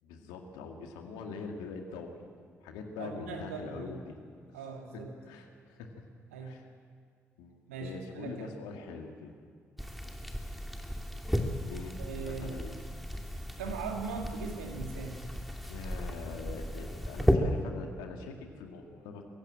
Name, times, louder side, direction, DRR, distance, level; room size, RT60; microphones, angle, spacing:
voice 1, 0.0-2.2 2.6-4.2 4.5-4.6 4.9-5.9 6.4-6.7 7.4-9.3 11.6-12.8 15.6-19.2, left 4 dB, 75° left, 4 dB, 2.1 m, -43 dB
voice 2, 3.0-4.0 4.5-5.1 6.3-6.6 7.7-8.5 12.0-12.6 13.3-15.2, right 5 dB, 85° right, 3 dB, 2.0 m, -40 dB
sound 1, 9.8-17.3, equal, ahead, 2.6 m, -34 dB
23.5 x 16.0 x 8.8 m, 2.1 s
figure-of-eight pair, 40°, 7 cm